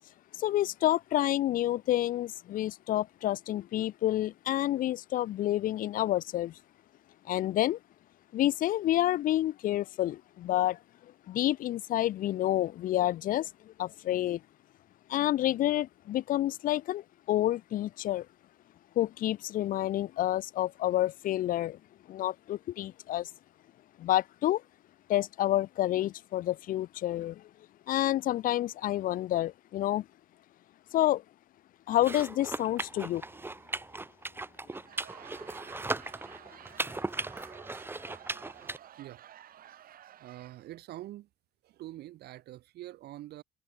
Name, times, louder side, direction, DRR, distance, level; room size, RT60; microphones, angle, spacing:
voice 1, 0.4-6.5 7.3-7.8 8.3-10.8 11.3-14.4 15.1-18.3 19.0-21.8 22.1-23.3 24.0-24.6 25.1-27.4 27.9-30.0 30.9-31.2 31.9-33.2, left 13 dB, 55° left, 0.5 m, -29 dB
sound 1, 31.9-38.8, right 2 dB, 15° right, 1.6 m, -38 dB
Laughter / Crowd, 34.5-40.8, right 11 dB, 60° right, 6.8 m, -52 dB
voice 2, 40.2-41.3 41.6-43.4, right 15 dB, 75° right, 4.7 m, -45 dB
cardioid pair, 110°, 17 cm